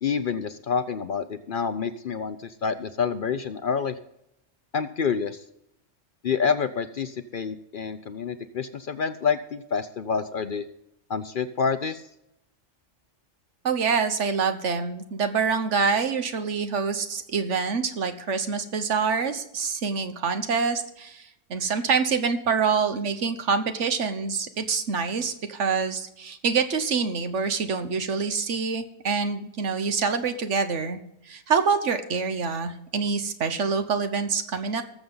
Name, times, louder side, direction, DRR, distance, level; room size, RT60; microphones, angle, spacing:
voice 1, 0.0-3.9 4.7-5.4 6.2-10.6 11.1-12.0, left 6 dB, 50° left, 11 dB, 0.7 m, -28 dB
voice 2, 13.6-31.0 31.3-34.8, right 5 dB, 70° right, 8 dB, 1.4 m, -26 dB
19.5 x 7.1 x 3.9 m, 0.81 s
omnidirectional pair, 1.3 m